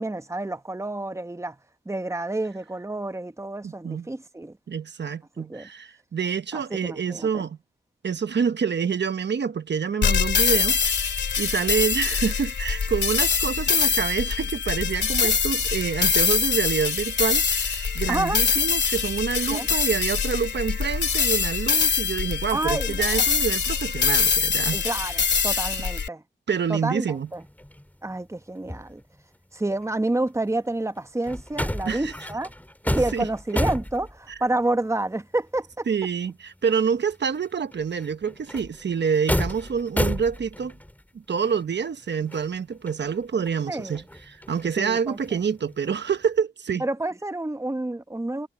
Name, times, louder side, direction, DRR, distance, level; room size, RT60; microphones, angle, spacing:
voice 1, 0.0-1.6 1.8-4.6 5.4-5.7 6.5-7.5 15.0-15.1 18.1-18.4 19.5-19.7 22.5-23.2 24.7-26.2 26.7-27.4 28.0-29.0 29.5-32.5 32.8-35.9 43.7-44.0 44.8-45.2 46.8-48.5, right 2 dB, 15° right, 1.2 m, -29 dB
voice 2, 3.6-4.1 4.7-7.6 8.0-10.8 11.0-24.9 26.5-27.3 31.9-32.1 33.1-33.3 34.3-34.4 35.9-40.7 41.3-46.8, right 6 dB, 70° right, 1.2 m, -27 dB
sound 1, 10.0-26.1, left 6 dB, 75° left, 2.2 m, -24 dB
sound 2, 26.6-26.8 27.0-29.3 29.7-36.3 36.6-36.7 37.0-41.0 41.3-44.7 45.0-46.3, left 1 dB, 10° left, 2.1 m, -33 dB
cardioid pair, 50°, 19 cm